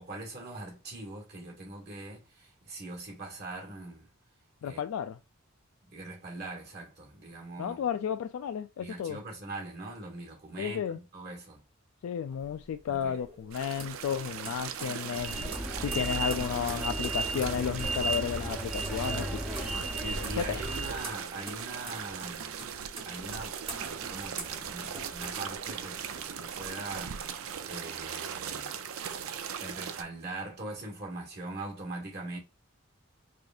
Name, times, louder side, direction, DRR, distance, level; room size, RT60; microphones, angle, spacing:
voice 1, 0.0-4.1 4.6-4.8 5.9-7.9 8.8-11.6 12.9-13.2 20.0-22.7 23.0-28.8 29.4-32.4, right 2 dB, 55° right, 1.6 m, -42 dB
voice 2, 4.6-5.2 7.6-9.2 10.6-11.0 12.0-15.5 15.8-19.9 20.2-20.6, left 8 dB, 85° left, 0.3 m, -33 dB
sound 1, 12.3-26.1 26.5-27.4, right 3 dB, 30° right, 0.9 m, -46 dB
sound 2, 13.5-30.0, right 8 dB, 85° right, 0.4 m, -39 dB
sound 3, 15.1-21.1, right 2 dB, ahead, 0.6 m, -34 dB
4.8 x 2.7 x 2.4 m
head